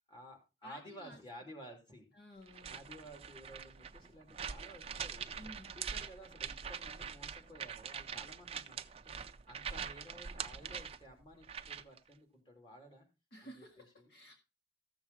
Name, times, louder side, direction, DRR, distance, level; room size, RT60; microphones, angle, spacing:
voice 1, 0.1-2.1 2.7-5.4 5.7-13.1 13.4-13.6 14.0-14.1, equal, 25° left, 2.9 m, -54 dB
voice 2, 0.6-1.2 2.1-2.9 5.4-5.8 13.3-14.4, equal, 60° left, 1.9 m, -54 dB
sound 1, 2.5-12.0, right 7 dB, 35° right, 0.5 m, -44 dB
14.0 x 7.1 x 4.0 m
head